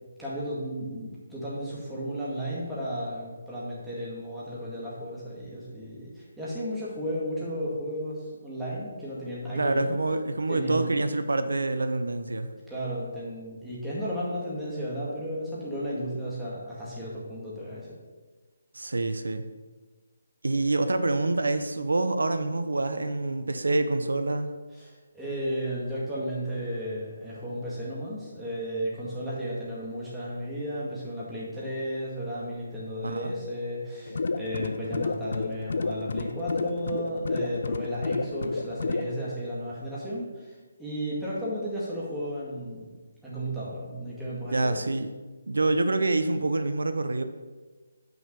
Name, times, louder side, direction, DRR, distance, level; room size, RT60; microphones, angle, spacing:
voice 1, 0.2-10.0 10.5-11.0 12.7-17.9 24.8-42.9 43.2-44.9, equal, 5° right, -9 dB, 2.0 m, -34 dB
voice 2, 9.6-12.5 18.7-19.4 20.4-24.5 33.0-33.4 44.5-45.1 45.5-47.2, right 2 dB, 90° right, 9 dB, 0.7 m, -26 dB
sound 1, 34.1-39.1, left 3 dB, 65° left, 0.5 m, -31 dB
6.0 x 5.4 x 6.8 m, 1.3 s
hypercardioid pair, 165°, 0 cm